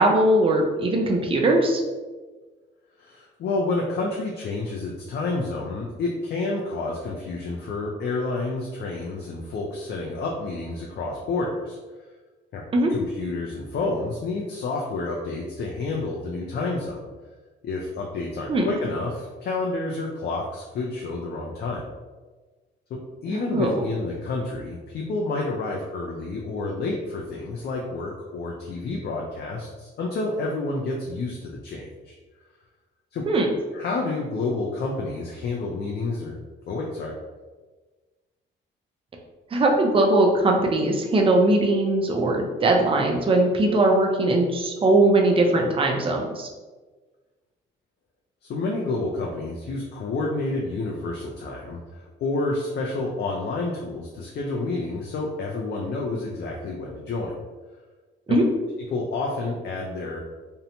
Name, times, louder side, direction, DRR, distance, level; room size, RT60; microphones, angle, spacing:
voice 1, 0.0-1.8 12.7-12.9 18.5-18.7 23.3-23.8 33.3-33.5 39.5-46.5 58.3-58.4, right 2 dB, 25° right, 1 dB, 0.5 m, -20 dB
voice 2, 3.0-11.8 12.5-12.6 12.9-17.1 17.6-21.9 22.9-32.1 33.1-33.2 33.7-36.4 36.7-37.1 48.4-57.4 58.3-58.4 58.9-60.2, left 3 dB, 55° left, -1 dB, 0.4 m, -29 dB
2.6 x 2.1 x 2.8 m, 1.3 s
cardioid pair, 90°, 20 cm